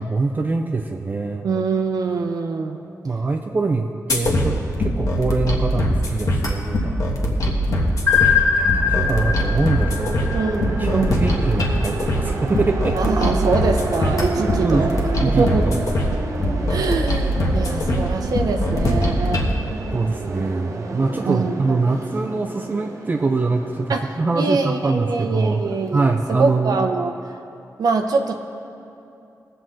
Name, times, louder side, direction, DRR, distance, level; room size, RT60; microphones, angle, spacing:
voice 1, 0.0-1.5 3.0-7.9 8.2-10.2 10.8-13.0 14.6-15.8 16.7-16.8 19.9-25.7 25.9-26.8, right 3 dB, 30° right, 4 dB, 0.5 m, -24 dB
voice 2, 1.4-2.8 10.3-11.2 12.9-14.9 15.3-15.7 16.7-19.4 21.3-21.8 23.9-24.0 24.4-27.1 27.8-28.3, right 4 dB, 80° right, 4 dB, 0.8 m, -23 dB
sound 1, 4.1-19.5, equal, 60° left, 1.4 m, -22 dB
sound 2, 8.1-11.0, left 7 dB, 25° left, 2.0 m, -21 dB
sound 3, 8.8-26.6, right 3 dB, 55° right, 0.9 m, -31 dB
20.0 x 7.8 x 3.8 m, 2.7 s
wide cardioid pair, 160°, 6 cm